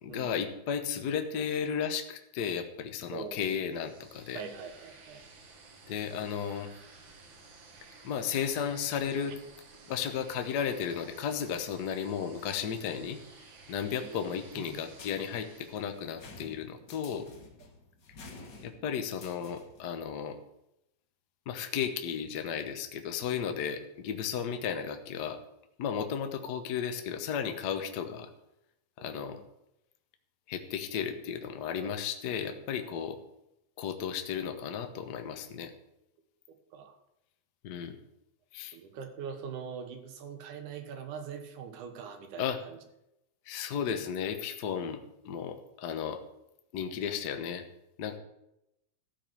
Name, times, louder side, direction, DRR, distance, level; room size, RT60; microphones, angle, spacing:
voice 1, 0.0-4.4 5.9-6.7 8.0-9.4 9.9-13.2 13.7-17.3 18.6-20.3 21.5-25.4 25.8-28.3 29.0-29.4 30.5-33.2 33.8-35.7 37.6-38.0 38.5-38.8 42.4-42.6 43.5-45.0 45.2-46.2 46.7-47.6 48.0-48.2, left 7 dB, 70° left, 6 dB, 0.9 m, -34 dB
voice 2, 3.1-3.5 4.3-5.2 13.8-14.8 29.0-29.4 31.8-31.9 36.7-37.0 38.7-42.8, right 6 dB, 85° right, 6 dB, 2.8 m, -43 dB
sound 1, 3.6-16.4, right 4 dB, 50° right, 1.8 m, -54 dB
sound 2, 14.9-19.9, left 3 dB, 45° left, 1.7 m, -51 dB
14.0 x 5.2 x 7.4 m, 0.84 s
omnidirectional pair, 3.4 m